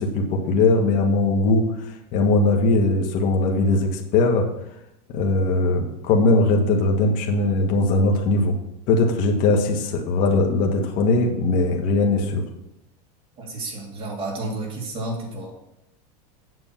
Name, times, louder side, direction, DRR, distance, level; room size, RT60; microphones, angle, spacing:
voice 1, 0.0-1.7 2.1-4.5 5.1-8.5 8.9-12.4, left 2 dB, 45° left, 2 dB, 1.5 m, -20 dB
voice 2, 13.4-15.5, right 2 dB, 25° right, -1 dB, 2.6 m, -31 dB
8.1 x 6.2 x 5.9 m, 0.84 s
supercardioid pair, 150°, 20 cm